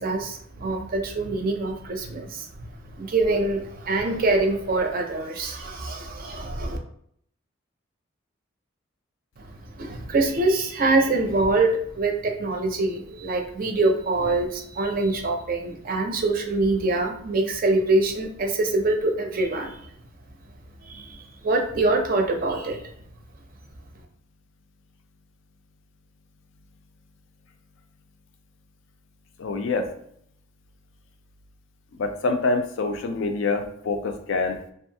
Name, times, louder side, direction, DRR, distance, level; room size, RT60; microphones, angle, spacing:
voice 1, 0.0-2.5 2.9-6.8 9.4-19.8 20.8-22.8, right 2 dB, 45° right, 3 dB, 0.4 m, -24 dB
voice 2, 29.4-29.9 32.0-34.6, left 3 dB, 75° left, 6 dB, 0.4 m, -26 dB
2.7 x 2.3 x 2.7 m, 0.67 s
head